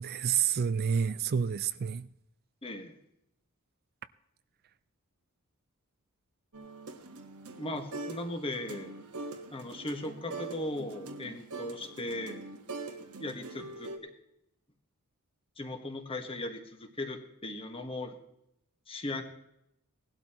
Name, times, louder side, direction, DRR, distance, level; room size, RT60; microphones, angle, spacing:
voice 1, 0.0-2.1, right 7 dB, 45° right, 0.4 m, -29 dB
voice 2, 2.6-2.9 7.5-8.9 9.5-12.4 13.2-13.9 15.6-18.2 18.9-19.2, left 1 dB, 25° left, 1.5 m, -38 dB
sound 1, 6.5-8.3 8.5-14.0, right 3 dB, 85° right, 1.5 m, -43 dB
18.5 x 12.0 x 3.0 m
head